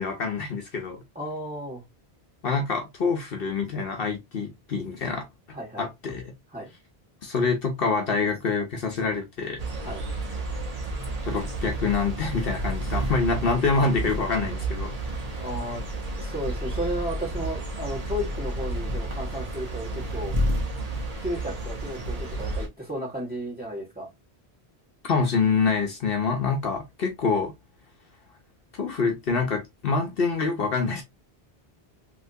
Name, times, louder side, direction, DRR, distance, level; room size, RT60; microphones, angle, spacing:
voice 1, 0.0-1.0 2.4-5.3 5.8-6.3 7.2-9.6 11.2-15.0 25.0-27.5 28.7-31.0, left 4 dB, 65° left, 1.0 m, -26 dB
voice 2, 1.1-1.8 5.5-5.9 6.5-6.7 9.8-10.0 15.3-15.8 16.2-20.4 21.2-24.1, equal, 10° right, 1.8 m, -33 dB
sound 1, 9.6-22.7, right 1 dB, 40° right, 1.0 m, -31 dB
3.3 x 2.9 x 2.6 m
omnidirectional pair, 1.1 m